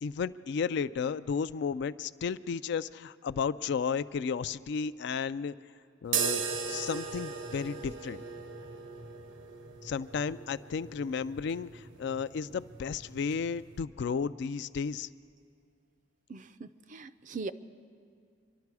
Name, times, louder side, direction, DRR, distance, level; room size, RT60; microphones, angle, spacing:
voice 1, 0.0-5.5 6.0-6.4 6.7-8.2 9.8-15.1, left 6 dB, 60° left, 15 dB, 0.3 m, -33 dB
sound 1, 6.1-13.8, right 6 dB, 75° right, 0.8 m, -38 dB
voice 2, 16.3-17.5, right 4 dB, 40° right, 13 dB, 0.4 m, -40 dB
25.5 x 11.5 x 4.7 m, 2.2 s
head